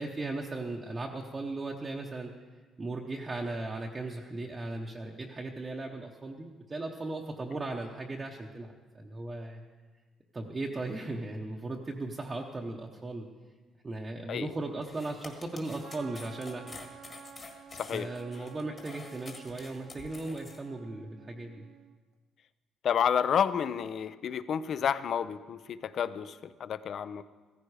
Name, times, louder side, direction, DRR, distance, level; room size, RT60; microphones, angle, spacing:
voice 1, 0.0-2.3 2.8-9.6 10.3-13.3 13.8-16.8 17.9-21.7, right 2 dB, 20° right, -1 dB, 0.9 m, -37 dB
sound 1, 14.8-20.6, left 3 dB, 25° left, 1.7 m, -48 dB
Trumpet, 15.8-22.0, right 8 dB, 60° right, 0.9 m, -52 dB
voice 2, 22.8-27.2, left 8 dB, 45° left, 15 dB, 0.5 m, -30 dB
16.0 x 14.5 x 4.8 m, 1.3 s
cardioid pair, 165°, 0 cm